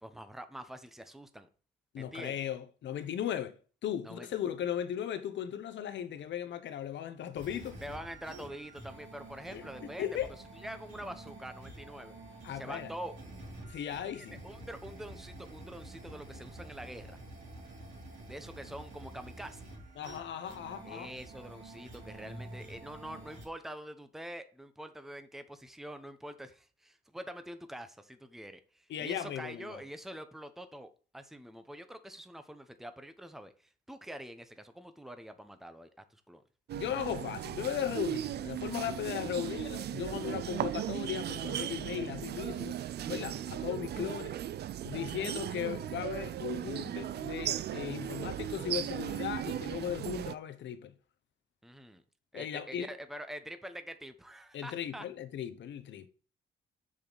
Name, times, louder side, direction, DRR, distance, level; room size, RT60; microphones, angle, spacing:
voice 1, 0.0-1.5 2.0-2.4 4.0-4.3 7.8-10.1 10.5-12.1 12.5-13.1 14.1-17.2 18.3-19.7 20.8-36.4 43.2-43.5 51.6-52.0 52.3-55.1, equal, ahead, 0.9 m, -45 dB
voice 2, 1.9-3.6 3.8-7.8 9.5-10.3 12.4-12.9 13.7-14.4 20.0-21.1 28.9-29.8 36.7-42.8 43.1-44.4 44.8-50.9 52.3-52.9 54.5-56.1, left 10 dB, 65° left, 1.0 m, -37 dB
sound 1, 7.3-23.5, right 2 dB, 80° right, 3.6 m, -49 dB
sound 2, 36.7-50.4, right 11 dB, 55° right, 0.4 m, -37 dB
7.2 x 6.7 x 4.1 m
cardioid pair, 90°, 20 cm